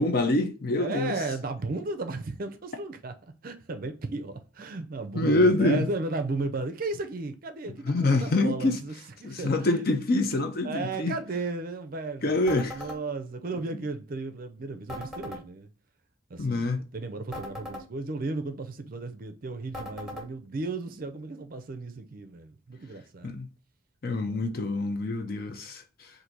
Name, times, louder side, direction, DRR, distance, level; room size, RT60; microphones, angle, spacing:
voice 1, 0.0-1.2 5.1-5.9 7.8-8.8 9.2-11.2 12.2-12.8 16.4-16.8 23.2-23.5 24.0-26.1, left 2 dB, 45° left, 0.6 m, -25 dB
voice 2, 0.8-3.2 3.4-8.9 9.2-9.9 10.6-12.4 12.7-15.7 16.3-23.4 24.1-24.6, right 3 dB, 45° right, 0.5 m, -35 dB
sound 1, 12.5-13.0 14.9-15.4 17.3-17.9 19.7-20.3, left 1 dB, 5° right, 1.1 m, -39 dB
3.9 x 2.6 x 4.5 m
head